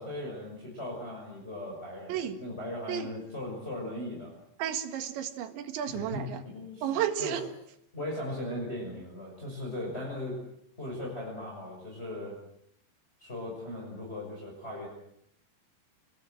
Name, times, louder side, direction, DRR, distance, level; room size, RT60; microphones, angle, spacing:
voice 1, 0.0-4.4 5.9-7.4 7.9-10.5 10.8-12.4 13.2-14.9, left 1 dB, 15° left, -3 dB, 6.2 m, -38 dB
voice 2, 2.1-2.4 2.9-3.1 4.6-6.4 6.8-7.4, right 10 dB, 75° right, 6 dB, 4.1 m, -32 dB
29.0 x 20.5 x 7.8 m, 0.73 s
omnidirectional pair, 5.3 m